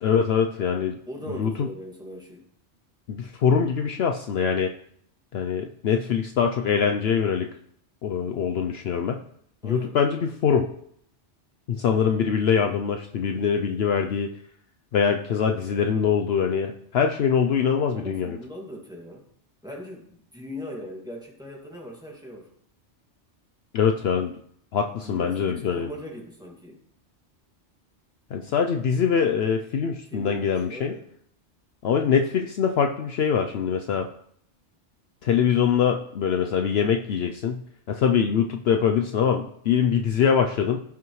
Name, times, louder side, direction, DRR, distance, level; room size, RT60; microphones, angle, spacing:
voice 1, 0.0-1.0 1.3-1.7 3.1-4.7 5.3-7.5 8.0-9.2 9.6-10.7 11.7-14.3 14.9-18.4 23.7-24.4 24.7-25.9 28.3-30.9 31.8-34.0 35.2-37.6 37.9-40.8, left 7 dB, 65° left, 4 dB, 0.8 m, -23 dB
voice 2, 1.1-2.4 9.6-10.0 17.9-19.2 19.6-22.4 25.0-26.8 30.1-31.0, equal, 5° right, -2 dB, 2.0 m, -39 dB
15.5 x 5.9 x 3.1 m, 0.67 s
omnidirectional pair, 1.2 m